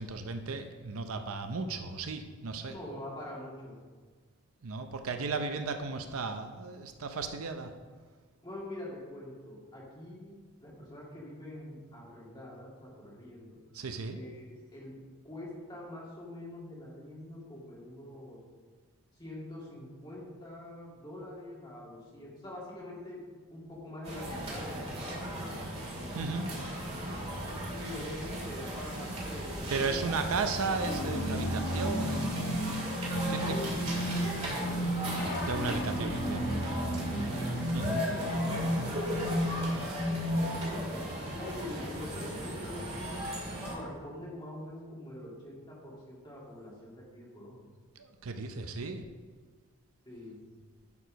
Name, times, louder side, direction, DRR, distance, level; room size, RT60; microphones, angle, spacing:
voice 1, 0.0-2.7 4.6-7.8 13.7-14.2 26.1-26.5 29.7-32.7 33.3-33.6 35.4-36.6 37.7-38.1 48.0-49.1, right 4 dB, 80° right, 7 dB, 0.6 m, -35 dB
voice 2, 2.7-3.8 8.4-13.6 14.1-18.4 19.2-25.8 27.7-30.2 33.4-35.0 37.1-37.3 40.1-43.3 43.7-47.7 50.1-50.4, left 1 dB, 20° left, -5 dB, 2.0 m, -45 dB
sound 1, 24.0-43.7, equal, 30° right, 2.2 m, -37 dB
sound 2, 30.8-40.8, equal, 45° left, 1.0 m, -33 dB
11.0 x 4.7 x 5.1 m, 1.5 s
head